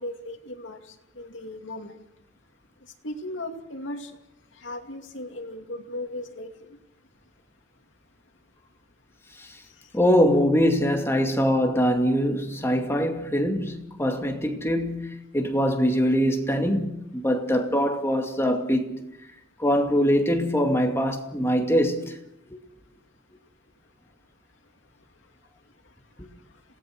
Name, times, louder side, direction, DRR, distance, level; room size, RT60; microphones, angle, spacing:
voice 1, 0.0-2.0 3.0-4.1 4.6-6.5, left 1 dB, 70° left, 2.6 m, -36 dB
voice 2, 9.9-18.9 19.6-22.2, equal, 15° left, 2.4 m, -23 dB
27.5 x 18.5 x 6.3 m
head